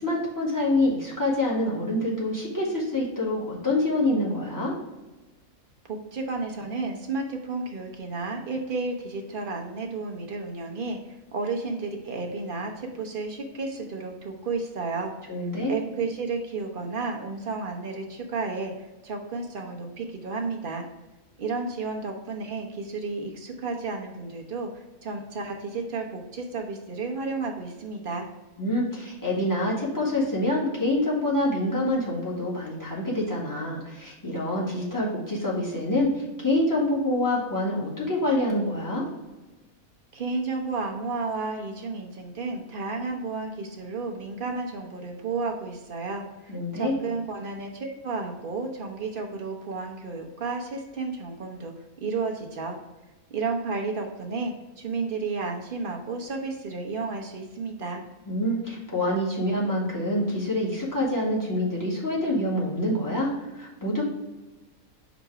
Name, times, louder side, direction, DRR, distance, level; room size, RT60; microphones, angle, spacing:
voice 1, 0.0-4.8 15.3-15.7 28.6-39.1 46.5-46.9 58.3-63.3 63.5-64.0, left 1 dB, 15° left, -5 dB, 1.9 m, -26 dB
voice 2, 5.9-15.1 15.7-20.9 21.4-28.3 40.1-51.7 52.0-52.8 53.3-58.0, right 4 dB, 45° right, 2 dB, 0.9 m, -32 dB
5.2 x 4.0 x 4.6 m, 1.1 s
omnidirectional pair, 1.5 m